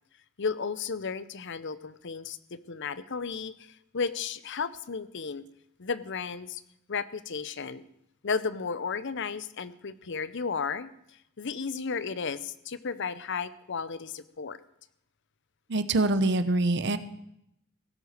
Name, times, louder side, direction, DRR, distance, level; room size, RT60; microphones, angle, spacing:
voice 1, 0.4-5.4 5.8-6.6 6.9-7.8 8.2-10.9 11.4-14.6, left 5 dB, 55° left, 16 dB, 0.7 m, -34 dB
voice 2, 15.7-17.0, right 2 dB, 55° right, 12 dB, 0.9 m, -24 dB
17.0 x 8.1 x 6.6 m, 0.78 s
head